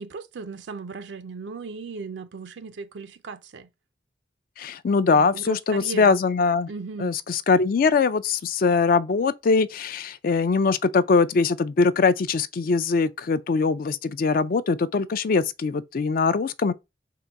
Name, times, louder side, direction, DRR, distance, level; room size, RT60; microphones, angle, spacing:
voice 1, 0.0-3.7 5.1-6.1 6.7-7.1, right 4 dB, 80° right, 0.5 m, -37 dB
voice 2, 4.6-6.7 7.0-16.7, left 4 dB, 55° left, 0.4 m, -22 dB
3.8 x 2.9 x 4.5 m
head